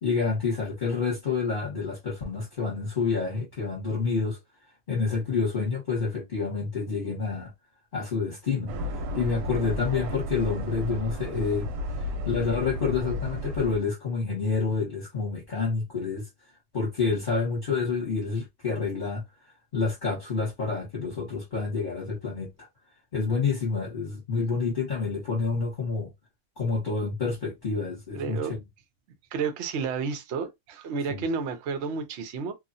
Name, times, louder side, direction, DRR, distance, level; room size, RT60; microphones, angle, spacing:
voice 1, 0.0-4.4 4.9-7.5 7.9-8.8 9.1-11.7 12.3-16.3 16.7-19.2 19.7-22.7 23.1-26.1 26.6-28.4 31.1-31.3, left 4 dB, 30° left, 1.0 m, -28 dB
sound 1, 8.7-13.8, left 1 dB, 90° right, 1.3 m, -33 dB
voice 2, 28.1-28.5 29.3-32.5, right 5 dB, 70° right, 0.6 m, -31 dB
2.9 x 2.4 x 2.6 m
omnidirectional pair, 2.0 m